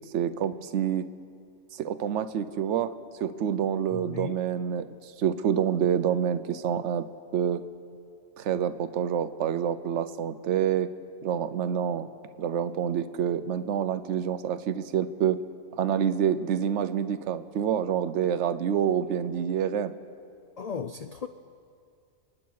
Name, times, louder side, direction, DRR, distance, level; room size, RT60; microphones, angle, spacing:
voice 1, 0.1-1.1 1.7-2.9 3.2-4.9 5.2-7.1 7.3-7.6 8.4-10.9 11.2-12.1 12.4-15.4 15.7-19.9, right 9 dB, 75° right, 13 dB, 0.9 m, -27 dB
voice 2, 3.9-4.3 20.6-21.3, left 6 dB, 80° left, 9 dB, 0.3 m, -35 dB
29.0 x 9.8 x 4.7 m, 2.4 s
omnidirectional pair, 1.3 m